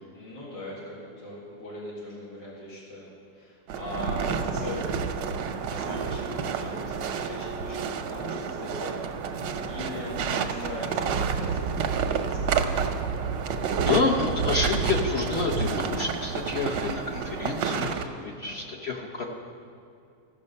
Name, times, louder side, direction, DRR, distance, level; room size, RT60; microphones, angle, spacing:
voice 1, 0.1-5.0 5.7-12.5 18.4-18.7, left 1 dB, 85° left, -7 dB, 2.7 m, -40 dB
sound 1, 3.7-18.1, right 6 dB, 90° right, 1.4 m, -29 dB
voice 2, 13.8-19.2, left 3 dB, 50° left, -1 dB, 0.8 m, -28 dB
14.5 x 6.3 x 5.4 m, 2.5 s
omnidirectional pair, 1.9 m